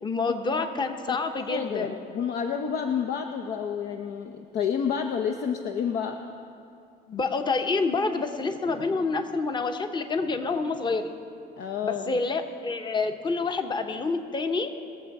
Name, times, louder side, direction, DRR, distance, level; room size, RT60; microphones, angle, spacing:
voice 1, 0.0-1.9 7.1-11.1 11.8-14.7, left 4 dB, 25° left, 7 dB, 0.9 m, -28 dB
voice 2, 1.5-6.2 11.6-12.2, left 7 dB, 70° left, 4 dB, 0.7 m, -29 dB
21.5 x 7.4 x 4.8 m, 2.5 s
cardioid pair, 110°, 17 cm